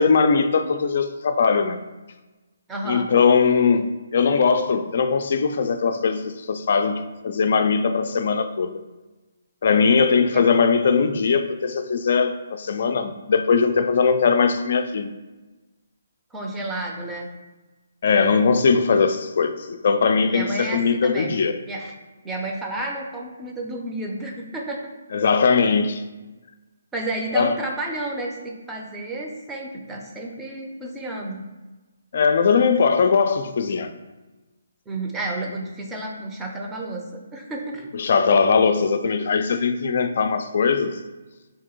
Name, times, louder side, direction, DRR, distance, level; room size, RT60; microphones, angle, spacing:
voice 1, 0.0-1.8 2.9-8.8 9.6-15.1 18.0-21.5 25.1-26.0 27.3-27.6 32.1-33.9 37.9-41.0, left 5 dB, 55° left, 0.3 m, -20 dB
voice 2, 2.7-3.1 10.3-10.4 16.3-17.3 20.2-21.4 21.7-21.9 22.2-24.9 26.9-31.4 34.9-37.9, right 2 dB, 10° right, 0.5 m, -31 dB
2.8 x 2.7 x 3.8 m
figure-of-eight pair, 145°, 0 cm